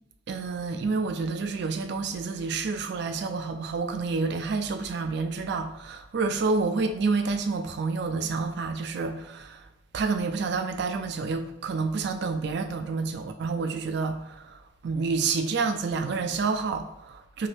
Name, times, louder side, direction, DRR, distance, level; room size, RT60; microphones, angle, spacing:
voice 1, 0.3-9.7 9.9-17.5, right 4 dB, 65° right, 0.4 m, -29 dB
3.0 x 2.7 x 3.3 m
head